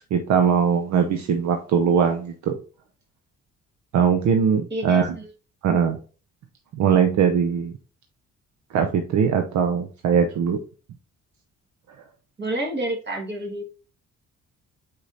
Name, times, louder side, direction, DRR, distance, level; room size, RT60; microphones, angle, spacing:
voice 1, 0.1-2.6 3.9-5.1 5.6-6.0 6.7-7.7 8.7-10.6, right 7 dB, 65° right, 6 dB, 0.6 m, -21 dB
voice 2, 4.7-5.3 12.4-13.6, right 1 dB, 35° right, 2 dB, 1.5 m, -29 dB
4.7 x 4.3 x 2.6 m, 0.37 s
cardioid pair, 90°, 30 cm